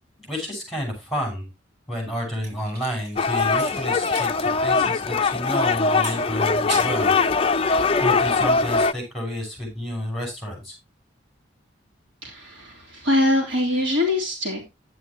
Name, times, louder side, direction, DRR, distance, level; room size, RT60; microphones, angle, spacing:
voice 1, 0.2-1.5 1.9-7.2 8.0-10.7, equal, ahead, 1 dB, 6.2 m, -30 dB
sound 1, 2.3-4.3 4.6-4.7 5.9-7.1 7.5-8.0, right 2 dB, 55° right, 6.1 m, -37 dB
sound 2, 3.2-8.9, left 4 dB, 30° left, 0.4 m, -21 dB
voice 2, 12.2-14.6, left 1 dB, 80° right, 1 dB, 3.3 m, -23 dB
11.0 x 9.3 x 3.1 m, 0.23 s
head